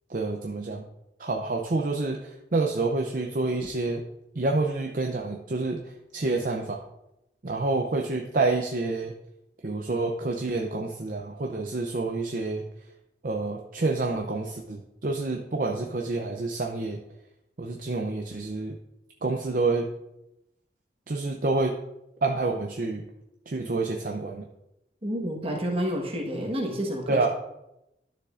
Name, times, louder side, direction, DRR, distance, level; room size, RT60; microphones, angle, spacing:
voice 1, 0.1-0.9 1.2-4.0 4.4-5.8 6.1-6.8 7.4-9.1 9.6-12.6 13.2-17.0 17.6-18.8 19.2-19.9 21.1-21.7 22.2-23.0 23.5-24.4 27.1-27.3, right 3 dB, 45° right, 1 dB, 0.6 m, -28 dB
voice 2, 25.0-27.3, equal, 30° right, 0 dB, 1.4 m, -29 dB
12.0 x 6.6 x 2.5 m, 0.88 s
head